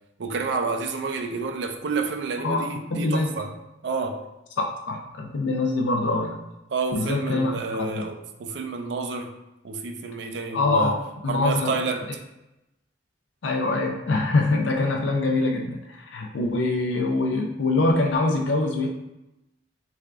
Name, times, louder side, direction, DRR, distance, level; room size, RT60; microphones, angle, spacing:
voice 1, 0.2-3.5 3.8-4.2 6.7-9.3 9.6-11.0 11.3-12.1, right 4 dB, 65° right, 0.4 m, -29 dB
voice 2, 2.4-3.4 4.9-6.4 6.9-8.0 10.5-11.0 11.2-11.8 13.4-18.9, left 2 dB, 75° left, 0.4 m, -24 dB
3.4 x 3.3 x 2.3 m
head